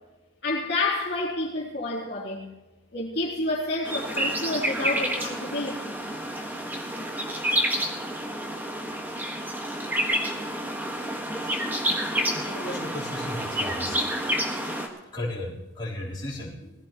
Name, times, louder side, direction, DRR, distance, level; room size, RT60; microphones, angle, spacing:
voice 1, 0.4-2.5 2.9-6.0 8.9-9.0, left 2 dB, 55° left, 3.0 m, -29 dB
sound 1, 3.8-14.9, equal, 10° right, 1.5 m, -29 dB
voice 2, 12.3-14.0 15.1-16.7, left 1 dB, 20° left, 3.9 m, -35 dB
21.0 x 15.0 x 3.0 m
head